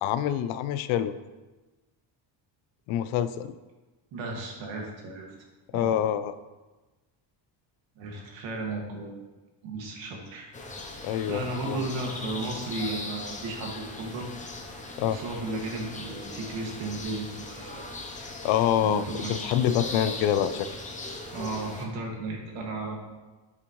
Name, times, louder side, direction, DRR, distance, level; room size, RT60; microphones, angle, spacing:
voice 1, 0.0-1.1 2.9-3.5 5.7-6.3 11.0-11.8 15.0-15.2 18.2-20.7, left 10 dB, 90° left, 14 dB, 0.6 m, -26 dB
voice 2, 4.1-5.3 5.7-6.0 8.0-9.2 9.6-10.5 11.3-14.3 15.0-17.9 18.8-19.4 19.7-19.8 21.3-23.0, right 2 dB, 80° right, 0 dB, 2.0 m, -34 dB
sound 1, 10.5-21.8, left 2 dB, 15° left, 0.7 m, -39 dB
8.8 x 7.1 x 3.1 m, 1.2 s
cardioid pair, 155°, 46 cm